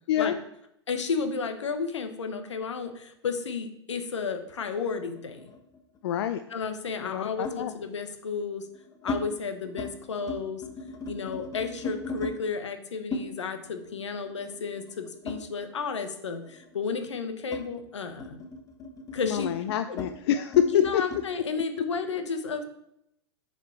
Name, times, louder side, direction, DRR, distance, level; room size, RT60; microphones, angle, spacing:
voice 1, 0.9-5.5 6.5-8.7 9.0-10.6 11.1-18.4 19.1-19.5 19.9-20.0 20.6-22.6, left 5 dB, 80° left, 7 dB, 1.1 m, -32 dB
sound 1, 4.6-6.1 7.4-7.7 8.4-9.2 9.6-9.9 10.2-12.4 13.1-16.0 16.3-21.3, left 2 dB, 20° left, 1.1 m, -38 dB
voice 2, 6.0-6.4 7.0-7.7 19.3-21.0, left 10 dB, 60° left, 10 dB, 0.4 m, -26 dB
6.9 x 5.0 x 4.4 m, 0.78 s
hypercardioid pair, 105°, 15 cm